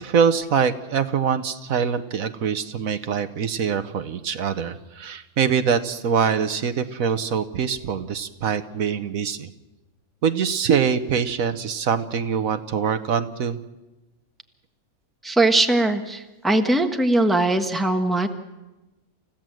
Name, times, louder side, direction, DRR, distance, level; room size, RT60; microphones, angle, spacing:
voice 1, 0.0-9.5 10.2-13.6, right 7 dB, 70° right, 10 dB, 1.4 m, -24 dB
voice 2, 15.2-18.3, right 2 dB, ahead, 5 dB, 1.3 m, -20 dB
29.0 x 16.0 x 7.8 m, 1.0 s
omnidirectional pair, 1.5 m